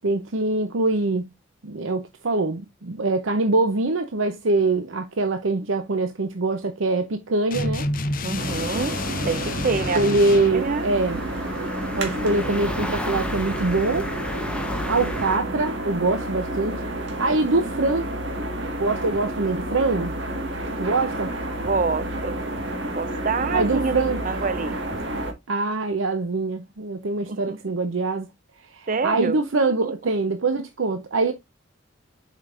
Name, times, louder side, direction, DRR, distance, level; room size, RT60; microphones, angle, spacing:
voice 1, 0.0-1.3 1.6-7.9 9.9-11.2 11.9-14.1 14.8-16.8 17.1-18.0 18.8-20.1 20.8-21.3 23.5-24.2 25.5-28.3 28.7-31.3, right 3 dB, 80° right, 0.7 m, -24 dB
sound 1, 7.5-10.6, left 2 dB, 45° left, 0.7 m, -29 dB
voice 2, 8.2-9.0 9.2-10.0 10.5-10.8 11.1-11.2 21.6-22.4 22.9-24.8 27.3-27.6 28.9-29.9, right 4 dB, 45° right, 0.5 m, -27 dB
sound 2, 8.4-25.3, right 1 dB, 60° right, 1.7 m, -30 dB
sound 3, 8.7-15.4, left 1 dB, 5° left, 0.9 m, -34 dB
7.4 x 5.1 x 2.5 m
head